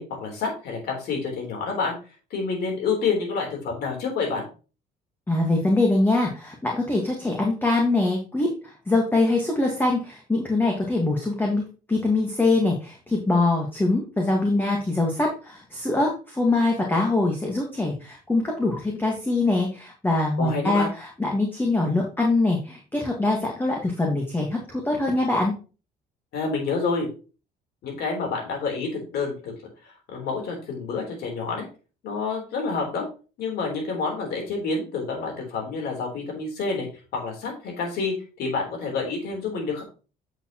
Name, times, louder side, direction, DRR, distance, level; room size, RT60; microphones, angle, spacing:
voice 1, 0.0-2.0 2.3-4.5 20.4-20.9 26.3-27.1 27.8-29.5 30.1-31.6 32.0-33.1 33.4-36.9 37.1-39.8, left 4 dB, 70° left, 1 dB, 3.5 m, -28 dB
voice 2, 5.3-25.5, left 2 dB, 10° left, 0 dB, 1.6 m, -23 dB
7.9 x 6.6 x 3.0 m, 0.34 s
cardioid pair, 110°, 17 cm